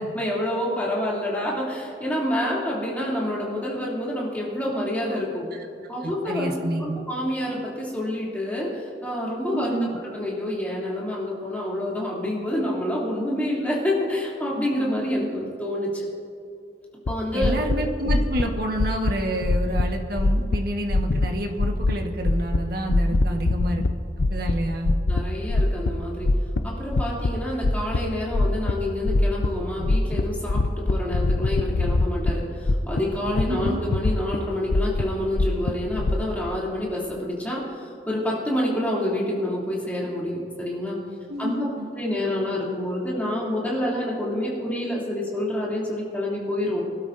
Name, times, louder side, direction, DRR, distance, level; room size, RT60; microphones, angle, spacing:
voice 1, 0.1-5.4 5.9-9.7 10.1-16.1 17.1-17.6 23.3-23.4 25.1-26.3 26.6-41.0 41.4-41.7 42.0-46.9, left 1 dB, 10° left, -5 dB, 2.8 m, -28 dB
voice 2, 6.0-7.0 9.5-9.9 17.3-23.8 24.2-25.0 26.6-26.7 33.5-33.8 41.3-41.9, right 1 dB, 60° right, 2 dB, 1.4 m, -29 dB
sound 1, 17.1-17.2 17.4-17.8 18.0-18.4 18.7-19.1 19.4-19.8 20.2-20.6 20.9-21.3 21.6-21.9 22.2-22.6 22.9-23.9 24.2-24.6 24.9-25.2 25.5-25.9 26.2-27.3 27.6-28.0 28.3-28.7 29.0-29.5 29.8-30.2 30.5-32.3 32.6-33.0 33.3-34.4 34.7-36.2, left 2 dB, 75° left, 0.6 m, -22 dB
24.0 x 12.5 x 2.6 m, 2.5 s
head